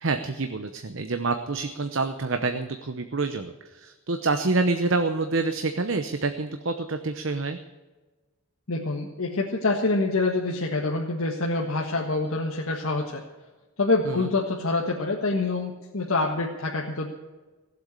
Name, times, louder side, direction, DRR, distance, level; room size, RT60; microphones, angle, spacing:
voice 1, 0.0-7.6 14.0-14.3, right 3 dB, 60° right, 7 dB, 0.8 m, -27 dB
voice 2, 8.7-13.2 13.8-17.1, left 3 dB, 80° left, -1 dB, 1.6 m, -26 dB
17.5 x 7.9 x 8.2 m, 1.2 s
head